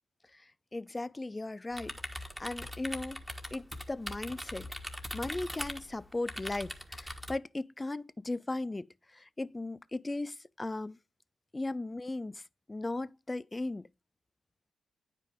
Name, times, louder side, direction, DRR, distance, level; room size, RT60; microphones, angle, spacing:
voice 1, 0.3-3.2 3.5-4.7 5.1-11.0 11.5-12.4 12.7-13.9, left 2 dB, 25° left, 0.4 m, -37 dB
sound 1, 1.7-7.3, equal, ahead, 1.5 m, -41 dB
9.4 x 5.2 x 3.5 m
supercardioid pair, 45°, 0 cm